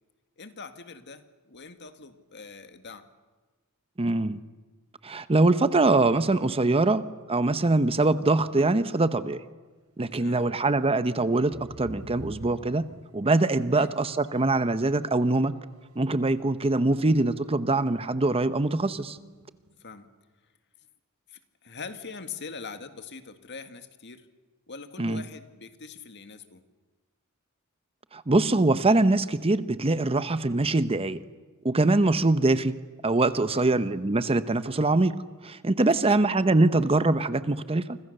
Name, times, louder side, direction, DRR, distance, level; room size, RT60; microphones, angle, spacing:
voice 1, 0.4-3.1 10.1-10.5 13.7-13.9 19.8-20.1 21.3-24.3 24.7-26.6 33.5-33.7 36.1-36.2, left 4 dB, 50° left, 9 dB, 1.9 m, -43 dB
voice 2, 4.0-4.4 5.0-7.0 7.3-9.4 10.0-12.9 13.1-15.5 16.0-19.2 25.0-25.2 28.1-31.2 31.6-32.7 33.0-35.1 35.4-38.0, right 2 dB, 25° right, 13 dB, 0.8 m, -23 dB
sound 1, 11.3-14.7 15.0-17.3 17.6-17.8 18.1-19.8, right 1 dB, 80° right, 5.1 m, -48 dB
29.0 x 26.0 x 6.7 m, 1.3 s
head